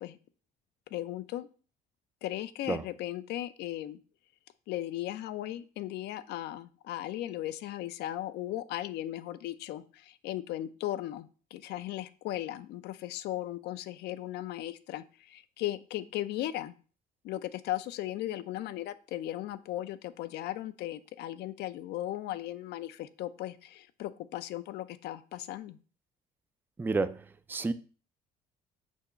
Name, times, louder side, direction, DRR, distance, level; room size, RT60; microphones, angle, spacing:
voice 1, 0.9-1.5 2.2-4.0 4.7-16.7 17.2-25.8, left 14 dB, 80° left, 0.5 m, -37 dB
voice 2, 26.8-27.7, right 3 dB, 10° right, 0.4 m, -30 dB
6.2 x 2.9 x 5.6 m
cardioid pair, 110°, 17 cm